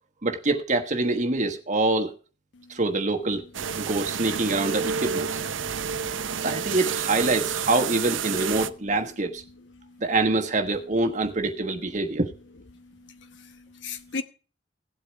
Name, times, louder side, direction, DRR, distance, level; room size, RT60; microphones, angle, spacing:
voice 1, 0.2-2.1 2.7-3.4 3.8-5.4 6.4-9.4 10.0-12.3, right 2 dB, 40° right, 1.3 m, -25 dB
sound 1, 3.5-8.7, right 7 dB, 85° right, 0.8 m, -29 dB
voice 2, 5.6-6.4 9.8-10.0 12.7-14.2, left 4 dB, 70° left, 1.0 m, -40 dB
16.5 x 8.5 x 4.6 m
head